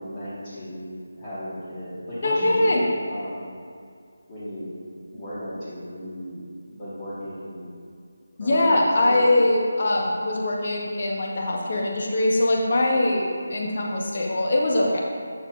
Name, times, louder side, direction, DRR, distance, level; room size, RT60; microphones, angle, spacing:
voice 1, 0.0-3.5 4.3-4.8 5.1-6.4 6.7-7.7 8.4-9.3, equal, 25° left, -14 dB, 1.4 m, -35 dB
voice 2, 2.2-2.9 8.4-15.0, left 1 dB, 45° left, -2 dB, 1.0 m, -22 dB
7.0 x 6.4 x 2.4 m, 2.3 s
figure-of-eight pair, 160°, 0 cm